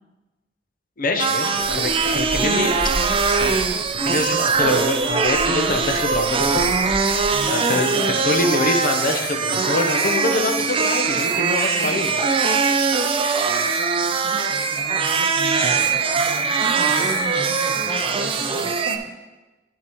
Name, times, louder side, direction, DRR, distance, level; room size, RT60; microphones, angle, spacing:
voice 1, 1.0-2.8 3.1-3.6 4.0-7.1 7.5-12.2, left 2 dB, 50° left, 5 dB, 0.7 m, -25 dB
sound 1, 1.2-19.0, right 5 dB, 30° right, 0.4 m, -21 dB
sound 2, 1.5-7.4, equal, 90° left, 2.4 m, -35 dB
voice 2, 7.3-8.2 14.0-19.0, equal, 10° right, -5 dB, 1.3 m, -35 dB
11.0 x 4.6 x 3.0 m, 1.1 s
head